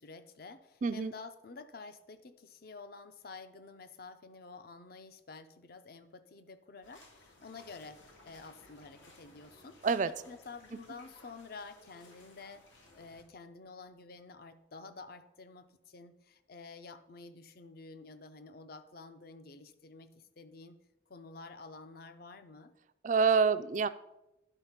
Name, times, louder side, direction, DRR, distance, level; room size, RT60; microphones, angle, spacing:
voice 1, 0.0-9.8 10.0-12.6 12.9-20.8 21.1-22.7, left 4 dB, 50° left, 10 dB, 0.6 m, -50 dB
voice 2, 0.8-1.1 9.8-10.1 23.0-23.9, right 5 dB, 40° right, 14 dB, 0.3 m, -27 dB
sound 1, 6.8-13.2, left 2 dB, 85° left, 1.9 m, -59 dB
11.0 x 4.3 x 5.7 m, 0.92 s
head